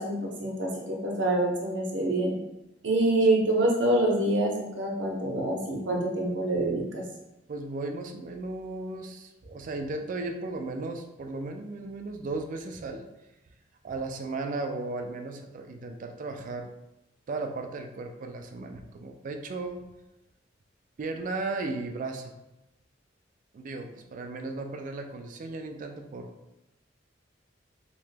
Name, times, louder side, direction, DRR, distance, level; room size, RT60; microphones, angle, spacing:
voice 1, 0.0-2.4 2.8-7.0, right 1 dB, 70° right, -1 dB, 0.7 m, -26 dB
voice 2, 7.5-13.1 13.8-16.7 17.3-19.8 21.0-22.3 23.5-26.3, right 3 dB, 45° right, 4 dB, 0.3 m, -35 dB
2.9 x 2.2 x 3.3 m, 0.96 s
head